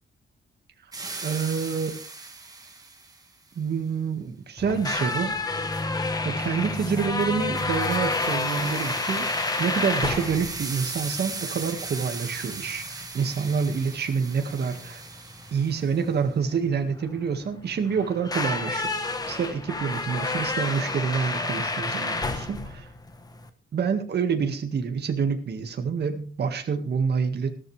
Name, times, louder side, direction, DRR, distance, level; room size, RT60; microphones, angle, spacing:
sound 1, 0.9-3.3 7.2-16.1, right 3 dB, 20° right, 1.9 m, -38 dB
voice 1, 1.2-1.9 3.6-5.3 6.2-9.3 9.6-15.0 15.5-18.9 19.3-22.9 23.7-27.5, right 6 dB, 55° right, 6 dB, 1.8 m, -27 dB
sound 2, 4.6-23.5, left 3 dB, 20° left, 1.2 m, -30 dB
15.0 x 13.0 x 3.4 m, 0.40 s
wide cardioid pair, 170°, 21 cm